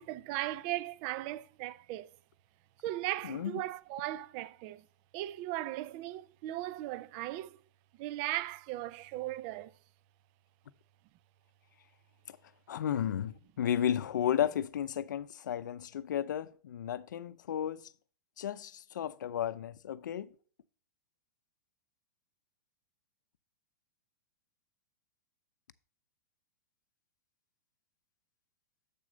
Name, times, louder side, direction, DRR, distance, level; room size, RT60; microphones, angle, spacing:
voice 1, 0.0-2.1 2.8-4.8 5.1-7.6 8.0-9.7, right 15 dB, 35° right, 0.4 m, -37 dB
voice 2, 3.2-3.6 12.3-12.4 12.7-17.9 18.4-20.3, left 10 dB, 85° left, 0.6 m, -33 dB
7.7 x 6.3 x 3.8 m
supercardioid pair, 155°, 10 cm